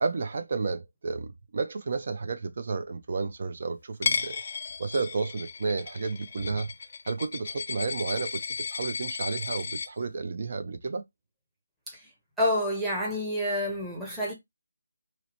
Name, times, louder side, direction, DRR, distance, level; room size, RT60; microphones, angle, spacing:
voice 1, 0.0-4.4 4.8-6.7 7.1-8.4 8.7-11.0, right 4 dB, 45° right, 0.4 m, -31 dB
Coin (dropping), 4.0-9.9, left 5 dB, 45° left, 0.4 m, -34 dB
voice 2, 12.4-14.3, left 1 dB, 5° right, 0.7 m, -28 dB
2.8 x 2.0 x 2.9 m
figure-of-eight pair, 165°, 0 cm